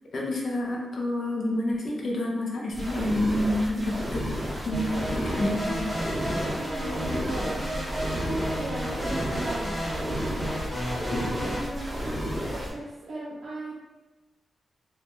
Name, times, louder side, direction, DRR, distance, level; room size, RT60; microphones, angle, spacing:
voice 1, 0.1-4.3 4.7-5.9 11.1-11.3, left 1 dB, 55° left, -1 dB, 0.5 m, -28 dB
sound 1, 2.7-12.7, equal, 20° right, 1.0 m, -32 dB
sound 2, 4.7-11.6, equal, 5° right, 0.6 m, -33 dB
voice 2, 6.6-7.8 8.1-9.8 11.3-13.7, right 1 dB, 55° right, -8 dB, 0.4 m, -36 dB
2.2 x 2.1 x 2.9 m, 1.1 s
wide cardioid pair, 145°, 0 cm